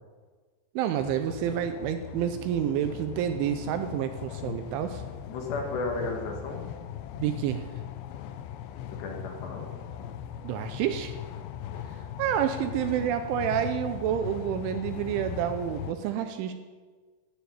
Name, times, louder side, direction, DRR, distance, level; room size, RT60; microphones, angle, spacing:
voice 1, 0.8-5.0 7.2-7.7 10.4-11.1 12.2-16.5, right 10 dB, 80° right, 8 dB, 2.9 m, -29 dB
sound 1, 1.0-15.9, left 10 dB, 85° left, 2.5 m, -39 dB
voice 2, 5.3-6.7 8.9-9.7 11.7-11.8, left 3 dB, 65° left, 2 dB, 3.7 m, -34 dB
14.5 x 9.2 x 8.8 m, 1.5 s
omnidirectional pair, 6.0 m